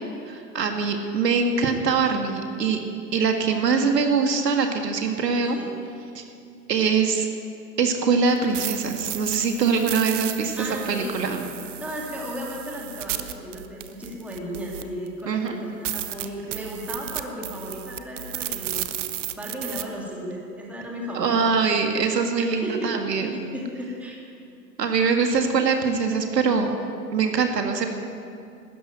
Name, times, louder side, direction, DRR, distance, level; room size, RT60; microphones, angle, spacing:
voice 1, 0.3-2.8 3.1-5.6 6.2-6.3 6.7-7.3 7.8-11.4 15.3-15.6 21.1-23.4 24.8-26.8 27.1-27.9, right 5 dB, 75° right, 5 dB, 2.0 m, -23 dB
voice 2, 5.3-5.7 10.6-11.2 11.8-21.5 22.6-23.1 23.5-24.2, equal, 5° right, -2 dB, 2.1 m, -35 dB
sound 1, 8.3-15.1 15.5-15.6 15.8-19.8, right 12 dB, 45° right, 0.9 m, -33 dB
13.0 x 10.5 x 9.2 m, 2.5 s
hypercardioid pair, 130°, 50 cm